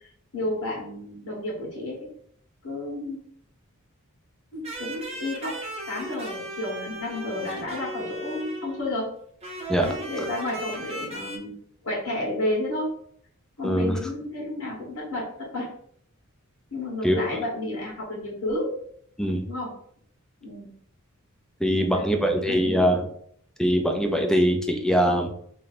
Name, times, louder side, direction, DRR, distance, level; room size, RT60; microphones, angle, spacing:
voice 1, 0.3-2.0 2.6-3.2 4.5-5.5 5.9-9.1 9.8-11.6 11.8-12.9 13.6-15.7 16.7-18.7 19.5-19.7 20.4-20.7 21.7-22.9, left 1 dB, 80° left, -8 dB, 1.6 m, -31 dB
sound 1, 4.6-8.9 9.4-11.4, right 1 dB, 30° right, 0.8 m, -36 dB
voice 2, 13.6-14.0 17.0-17.4 19.2-19.5 21.6-23.1 23.6-25.3, equal, 5° left, 3 dB, 0.5 m, -22 dB
3.2 x 2.7 x 4.0 m, 0.65 s
head